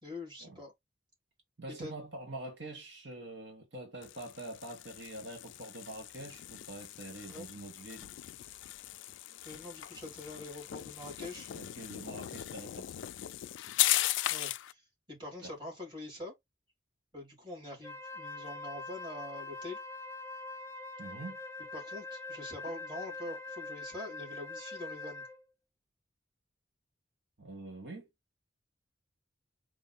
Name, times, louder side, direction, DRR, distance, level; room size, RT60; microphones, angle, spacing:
voice 1, 0.0-0.7 1.7-2.0 7.3-7.5 9.4-11.5 14.3-16.3 17.1-19.8 21.7-25.3, left 1 dB, 25° right, 2.9 m, -44 dB
voice 2, 1.6-8.1 11.5-13.1 15.4-15.5 21.0-21.4 27.4-28.1, right 2 dB, 65° right, 1.1 m, -45 dB
sound 1, 4.0-14.7, left 15 dB, 80° left, 0.3 m, -37 dB
Wind instrument woodwind instrument, 17.8-25.4, left 3 dB, 15° left, 0.5 m, -44 dB
4.5 x 2.6 x 4.0 m
head